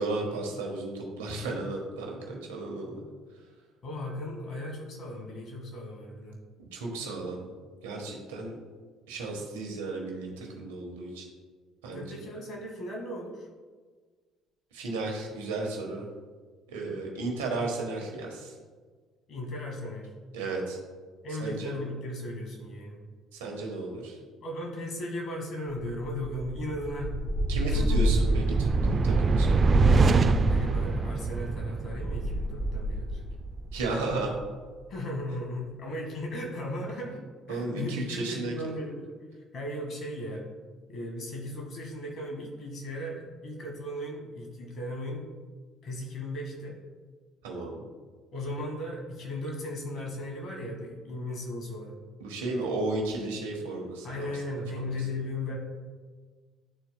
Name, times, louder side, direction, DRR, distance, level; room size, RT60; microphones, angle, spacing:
voice 1, 0.0-3.0 6.6-7.5 7.8-8.6 9.1-11.3 11.8-12.1 14.7-16.1 16.7-18.5 20.3-20.8 21.4-21.7 23.3-24.2 27.5-29.8 33.7-34.4 37.5-38.5 47.4-47.8 52.2-55.0, right 2 dB, 85° right, 1 dB, 1.2 m, -34 dB
voice 2, 3.8-6.4 11.9-13.5 17.2-17.4 19.3-20.1 21.2-23.0 24.4-27.2 27.7-28.1 30.5-33.2 34.9-39.1 39.3-40.5 40.9-45.3 45.8-46.8 48.3-52.0 54.0-55.6, left 1 dB, 50° left, 1 dB, 1.8 m, -36 dB
sound 1, 26.0-34.4, right 3 dB, 40° right, 0.4 m, -25 dB
11.0 x 4.4 x 2.2 m, 1.5 s
hypercardioid pair, 65°, 0 cm